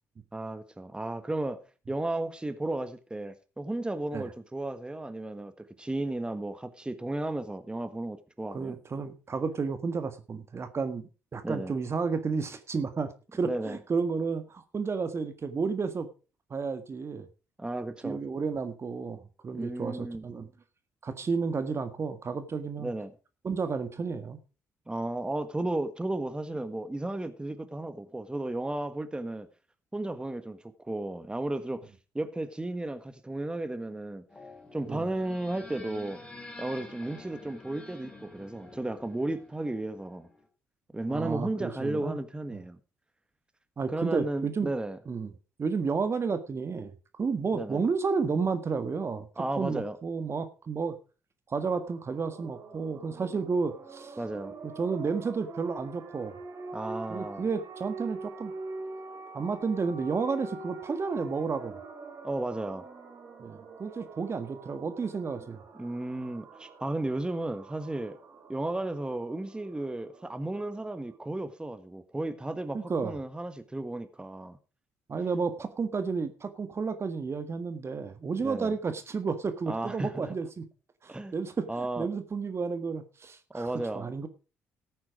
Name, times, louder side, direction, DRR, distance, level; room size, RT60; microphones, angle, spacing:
voice 1, 0.3-1.6 1.9-8.8 11.4-11.7 13.4-13.8 17.6-18.2 19.5-20.2 22.8-23.1 24.9-29.5 29.9-34.2 34.7-36.2 36.6-40.3 40.9-42.8 43.9-45.0 47.5-47.8 49.4-50.0 54.2-54.5 56.7-57.5 62.2-62.9 65.7-68.2 68.5-74.6 78.4-78.7 79.7-80.3 81.1-81.3 81.7-82.1 83.5-84.1, right 2 dB, 15° right, 1.6 m, -34 dB
voice 2, 8.5-16.1 16.5-17.3 18.0-20.5 21.0-22.9 23.4-24.4 34.9-35.1 41.1-42.2 42.5-42.6 43.8-44.7 45.1-45.3 45.6-46.9 47.2-49.3 49.6-51.0 51.5-54.2 54.8-56.3 57.1-58.5 59.3-61.8 63.4-65.6 72.7-73.1 75.1-80.6 81.0-84.3, right 5 dB, 40° right, 1.6 m, -31 dB
sound 1, 34.3-40.5, left 2 dB, 15° left, 3.7 m, -48 dB
sound 2, 51.7-71.1, right 3 dB, 55° right, 4.0 m, -45 dB
14.5 x 8.7 x 5.0 m
hypercardioid pair, 50°, 7 cm